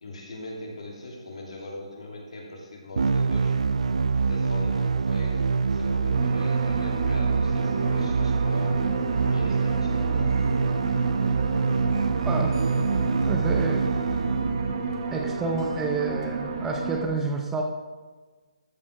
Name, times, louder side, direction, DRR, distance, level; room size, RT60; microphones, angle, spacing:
voice 1, 0.0-3.6 4.3-8.8 9.2-10.4, left 1 dB, 70° left, -1 dB, 2.7 m, -40 dB
sound 1, 3.0-14.9, right 4 dB, 75° right, 0.5 m, -25 dB
sound 2, 6.1-17.1, right 4 dB, 45° right, 1.3 m, -32 dB
voice 2, 13.3-13.9 15.1-17.6, right 3 dB, 10° right, 2 dB, 0.6 m, -29 dB
13.5 x 4.9 x 4.8 m, 1.3 s
hypercardioid pair, 165°, 4 cm